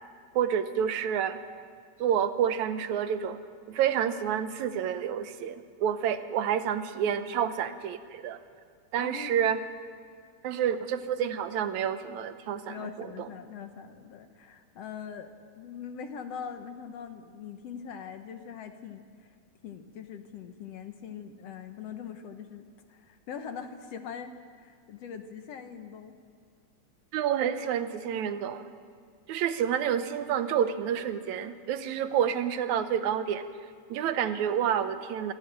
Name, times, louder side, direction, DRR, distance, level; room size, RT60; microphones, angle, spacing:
voice 1, 0.3-1.4 2.0-3.4 3.7-8.4 8.9-9.6 10.4-13.3 27.1-28.7 29.3-33.4 33.9-35.3, right 9 dB, 80° right, 11 dB, 2.2 m, -29 dB
voice 2, 9.0-9.4 12.7-19.3 19.6-24.3 24.6-26.2, left 7 dB, 65° left, 7 dB, 1.9 m, -42 dB
26.0 x 13.0 x 8.9 m, 2.1 s
omnidirectional pair, 3.4 m